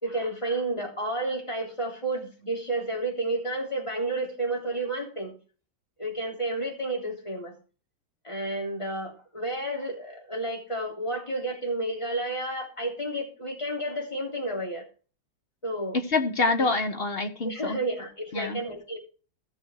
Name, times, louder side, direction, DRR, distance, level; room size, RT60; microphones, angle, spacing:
voice 1, 0.0-5.3 6.0-7.5 8.2-14.8 15.6-16.0 16.6-16.7 17.4-19.0, right 1 dB, 15° left, 3.4 m, -31 dB
voice 2, 15.9-17.8 18.3-18.6, left 3 dB, 40° left, 0.9 m, -26 dB
15.5 x 6.2 x 4.6 m
omnidirectional pair, 2.1 m